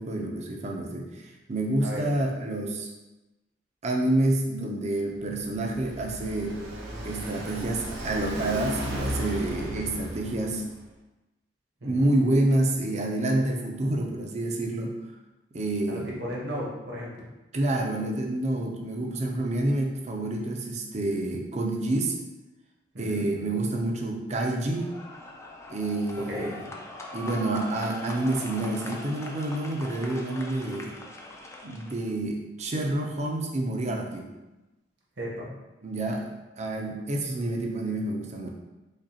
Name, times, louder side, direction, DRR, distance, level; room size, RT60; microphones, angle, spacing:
voice 1, 0.0-2.9 3.8-6.6 7.0-10.6 11.8-15.0 15.5-16.1 17.5-22.2 23.0-24.9 25.7-26.6 27.1-31.0 31.6-34.3 35.8-36.3 36.6-38.5, right 1 dB, 40° right, 1 dB, 0.5 m, -28 dB
Car passing by, 5.2-10.8, right 1 dB, 85° right, 0.7 m, -35 dB
voice 2, 11.8-12.1 15.9-17.3 22.9-23.2 26.3-26.5 35.2-35.5, equal, 65° right, -4 dB, 1.1 m, -35 dB
sound 1, 24.7-32.1, left 2 dB, 15° left, 0.3 m, -41 dB
5.0 x 2.3 x 2.8 m, 1.0 s
head